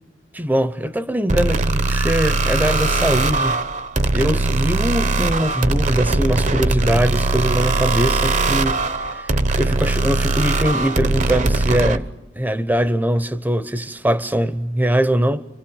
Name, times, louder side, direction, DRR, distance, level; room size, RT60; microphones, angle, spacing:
voice 1, 0.3-3.6 4.1-12.1 12.4-15.5, right 1 dB, 10° right, 0.8 m, -22 dB
sound 1, 1.3-12.0, right 2 dB, 40° right, 0.9 m, -20 dB
29.0 x 25.0 x 7.3 m
head